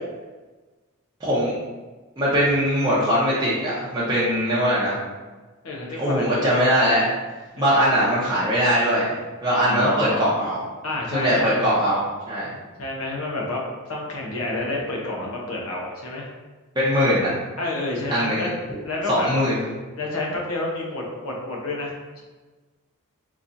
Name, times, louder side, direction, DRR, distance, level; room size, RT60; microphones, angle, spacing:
voice 1, 1.2-1.5 2.2-5.0 6.0-7.0 7.6-9.1 9.4-10.6 11.1-12.0 12.3-12.5 16.8-17.3 18.1-18.5 19.1-19.6, equal, 20° right, -9 dB, 0.7 m, -21 dB
voice 2, 5.6-6.3 7.5-7.8 9.6-10.3 10.8-11.7 12.8-13.6 13.9-16.3 17.6-18.5 18.8-19.3 20.0-22.2, left 2 dB, 75° left, -2 dB, 0.9 m, -29 dB
3.9 x 2.9 x 2.6 m, 1.3 s
head